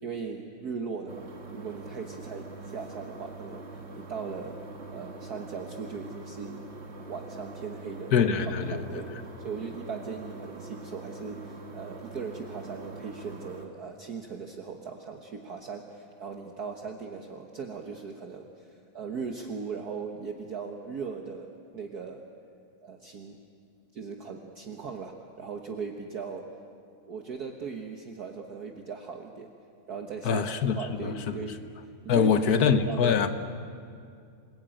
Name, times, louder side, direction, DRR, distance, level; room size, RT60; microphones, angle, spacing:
voice 1, 0.0-6.7 7.0-8.1 8.7-9.1 9.4-22.2 22.8-23.4 23.9-26.6 27.1-29.5 29.9-31.7 32.0-32.3 32.6-33.3, right 5 dB, 50° right, 3 dB, 1.7 m, -39 dB
sound 1, 1.1-13.7, right 3 dB, 35° right, 1.9 m, -43 dB
voice 2, 8.1-9.2 30.2-31.4 32.1-33.3, left 6 dB, 55° left, 10 dB, 1.5 m, -25 dB
27.5 x 20.5 x 9.0 m, 2.3 s
omnidirectional pair, 2.2 m